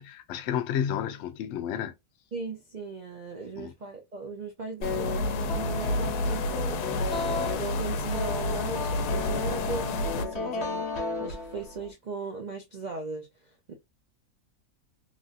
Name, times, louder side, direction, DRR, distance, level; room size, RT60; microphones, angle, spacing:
voice 1, 0.0-1.9 3.6-3.7, left 9 dB, 65° left, 0.7 m, -31 dB
voice 2, 2.3-10.9 11.2-13.7, right 4 dB, 80° right, 0.4 m, -38 dB
sound 1, 4.8-10.3, left 2 dB, 85° left, 1.1 m, -30 dB
sound 2, 4.8-11.9, left 4 dB, 50° left, 1.1 m, -34 dB
3.1 x 2.5 x 2.4 m
omnidirectional pair, 1.6 m